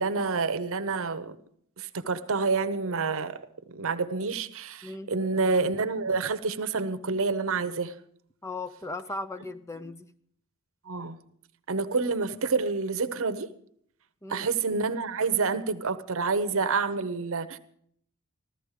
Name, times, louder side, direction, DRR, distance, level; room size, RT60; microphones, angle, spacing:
voice 1, 0.0-1.4 1.8-3.4 3.7-8.0 10.9-11.2 11.7-13.5 14.3-17.6, right 4 dB, 65° right, 0.9 m, -28 dB
voice 2, 8.4-10.1 14.2-14.5, left 2 dB, 15° left, 0.5 m, -37 dB
14.5 x 13.5 x 4.9 m
head